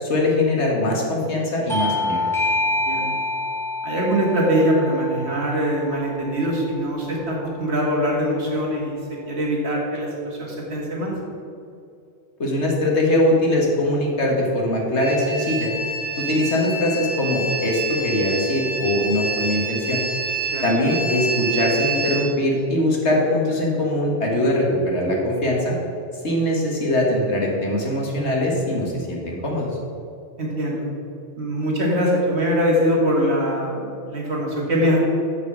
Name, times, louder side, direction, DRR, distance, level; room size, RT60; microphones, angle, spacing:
voice 1, 0.0-2.2 12.4-15.7 16.2-20.0 20.6-25.7 26.2-29.7, left 1 dB, 85° left, -2 dB, 1.9 m, -21 dB
Bell / Doorbell, 1.7-6.8, left 2 dB, ahead, 1.3 m, -27 dB
voice 2, 2.7-3.1 3.8-9.0 9.3-11.1 20.5-20.6 30.4-30.9 31.4-35.0, equal, 75° right, -3 dB, 2.1 m, -22 dB
sound 1, 15.0-22.2, right 3 dB, 30° right, 1.5 m, -27 dB
6.7 x 6.6 x 6.2 m, 2.6 s
omnidirectional pair, 1.1 m